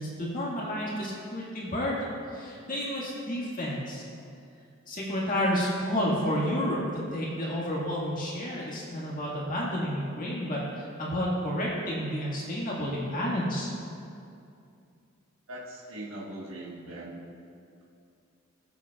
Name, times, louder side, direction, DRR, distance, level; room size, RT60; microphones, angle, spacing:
voice 1, 0.0-2.0 2.3-4.0 4.9-6.8 7.1-13.7, equal, 40° left, -5 dB, 1.8 m, -30 dB
voice 2, 15.5-17.2, right 1 dB, 80° right, -4 dB, 1.3 m, -40 dB
19.0 x 8.0 x 2.4 m, 2.5 s
head